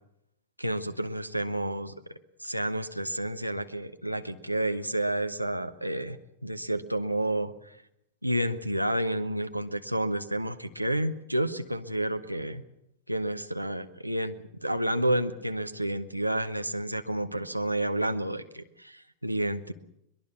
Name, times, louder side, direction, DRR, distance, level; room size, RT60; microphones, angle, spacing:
voice 1, 0.6-7.8 8.2-12.6 13.1-19.7, right 1 dB, 90° right, 8 dB, 1.2 m, -30 dB
22.5 x 21.5 x 7.2 m, 0.77 s
figure-of-eight pair, 90°, 0 cm